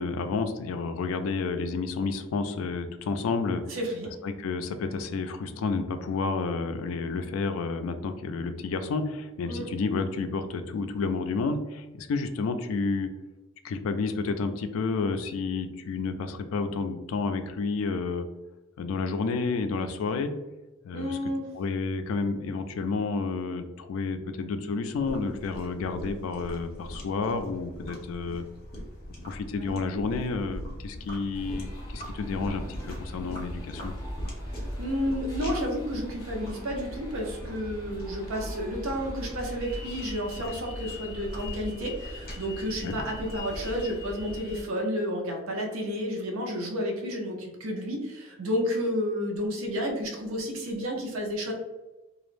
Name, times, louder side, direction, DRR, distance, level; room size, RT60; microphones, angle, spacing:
voice 1, 0.0-3.8 4.2-13.1 13.6-18.3 18.8-20.3 20.8-21.2 21.5-28.4 29.3-33.9 42.8-43.0, left 4 dB, 80° left, 8 dB, 0.3 m, -30 dB
voice 2, 3.7-4.1 9.5-9.7 20.9-21.4 29.6-29.8 34.5-51.5, equal, 80° right, 1 dB, 0.6 m, -31 dB
sound 1, 24.9-43.9, equal, 45° left, 0.8 m, -43 dB
sound 2, 31.3-44.6, left 1 dB, 15° left, 0.5 m, -39 dB
2.3 x 2.0 x 3.1 m, 1.1 s
head